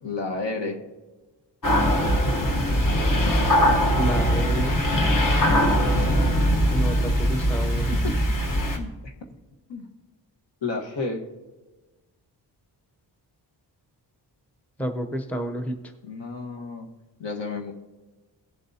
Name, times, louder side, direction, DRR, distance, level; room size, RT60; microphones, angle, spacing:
voice 1, 0.0-0.8 7.7-8.2 8.7-9.1 9.7-9.9 10.6-11.3 16.0-16.9 17.2-17.7, left 3 dB, 70° left, 1 dB, 1.4 m, -31 dB
sound 1, 1.6-8.8, equal, 45° left, 1.2 m, -21 dB
voice 2, 4.0-4.8 6.7-8.0 14.8-15.8, equal, 5° left, 5 dB, 0.6 m, -29 dB
18.0 x 7.3 x 2.8 m, 1.2 s
wide cardioid pair, 120°, 44 cm